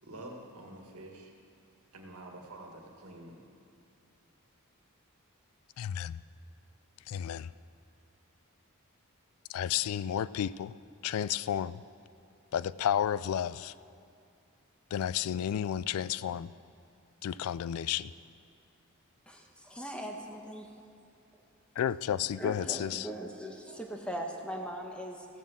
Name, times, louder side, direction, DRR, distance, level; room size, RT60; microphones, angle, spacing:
voice 1, 0.0-1.3 1.9-3.4, right 1 dB, 80° right, 1 dB, 1.9 m, -47 dB
voice 2, 5.8-6.2 7.1-7.5 9.5-10.7 11.0-11.8 12.5-13.7 14.9-16.5 17.2-18.1 21.8-23.1, left 9 dB, 75° left, 18 dB, 0.3 m, -32 dB
voice 3, 19.3-20.7 22.4-25.3, equal, 5° left, 2 dB, 1.1 m, -40 dB
15.5 x 7.3 x 7.3 m, 2.5 s
head